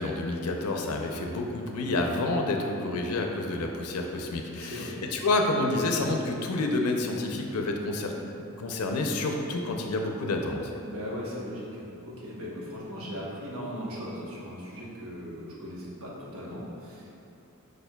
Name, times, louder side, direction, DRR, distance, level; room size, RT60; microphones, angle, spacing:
voice 1, 0.0-8.1 8.6-10.7, left 2 dB, 90° left, 2 dB, 0.5 m, -29 dB
voice 2, 4.6-5.0 10.8-17.1, equal, 70° right, -5 dB, 0.9 m, -38 dB
4.9 x 4.4 x 2.2 m, 2.9 s
head